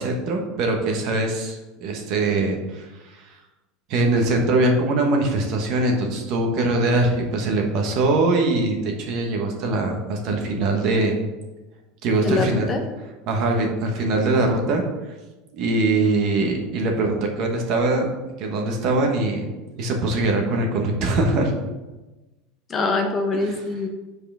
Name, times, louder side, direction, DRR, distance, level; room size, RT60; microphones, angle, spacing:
voice 1, 0.0-2.9 3.1-3.2 3.9-11.1 12.0-12.7 13.3-14.8 15.5-18.1 18.4-19.5 19.8-21.5, right 2 dB, 50° right, 2 dB, 1.3 m, -22 dB
voice 2, 12.2-12.8 22.7-23.9, left 3 dB, 20° left, 3 dB, 0.8 m, -24 dB
5.7 x 4.8 x 6.3 m, 1.1 s
supercardioid pair, 155°, 0 cm